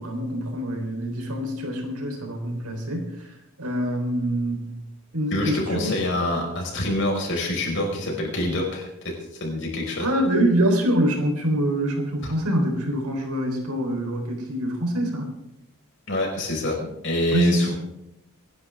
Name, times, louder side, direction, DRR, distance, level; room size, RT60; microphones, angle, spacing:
voice 1, 0.0-4.7 5.1-6.0 10.0-15.3 17.3-17.7, equal, 90° right, 2 dB, 4.1 m, -25 dB
voice 2, 5.3-9.1 9.4-10.1 12.2-12.3 16.1-16.7 17.0-17.7, left 1 dB, 55° left, 0 dB, 5.1 m, -26 dB
24.5 x 11.0 x 3.6 m, 0.83 s
head